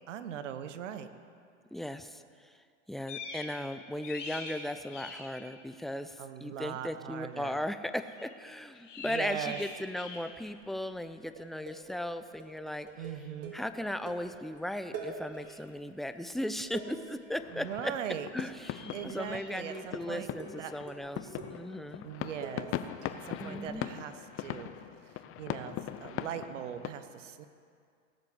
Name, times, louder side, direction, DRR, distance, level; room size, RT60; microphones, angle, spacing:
voice 1, 0.1-1.1 6.2-7.6 9.0-9.6 13.0-13.6 17.5-18.3 18.9-20.3 20.5-20.7 22.0-22.7 23.2-24.7 25.1-27.5, right 9 dB, 75° right, 10 dB, 1.1 m, -40 dB
voice 2, 1.7-2.5 2.9-12.9 13.5-17.9 18.3-22.0 23.4-23.9, left 1 dB, ahead, 10 dB, 0.5 m, -37 dB
sound 1, 3.1-3.6 3.9-5.4 8.0-8.3 8.8-10.5 13.2-13.3 15.2-15.6 18.5-19.6, left 3 dB, 80° left, 2.7 m, -44 dB
sound 2, 9.6-10.2 10.5-10.8 11.1-14.6 14.9-15.8 16.1-19.3 19.7-20.0 20.4-23.2 23.7-23.8, right 5 dB, 40° right, 2.6 m, -46 dB
sound 3, 17.4-26.9, left 11 dB, 35° left, 0.8 m, -41 dB
18.0 x 7.5 x 7.8 m, 2.2 s
hypercardioid pair, 95°, 37 cm